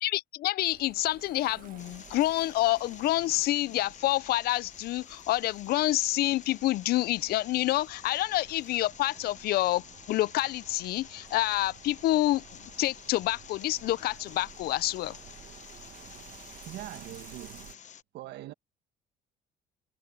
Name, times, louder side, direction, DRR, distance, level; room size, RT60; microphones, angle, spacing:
voice 1, 0.0-15.2, left 16 dB, 70° left, 0.5 m, -28 dB
sound 1, 0.6-17.8, right 10 dB, 55° right, 1.8 m, -53 dB
sound 2, 1.8-18.0, left 9 dB, 45° left, 1.0 m, -50 dB
sound 3, 2.3-16.3, right 7 dB, 40° right, 5.5 m, -68 dB
voice 2, 16.7-17.8 18.1-18.5, right 14 dB, 80° right, 1.5 m, -42 dB
cardioid pair, 110°, 17 cm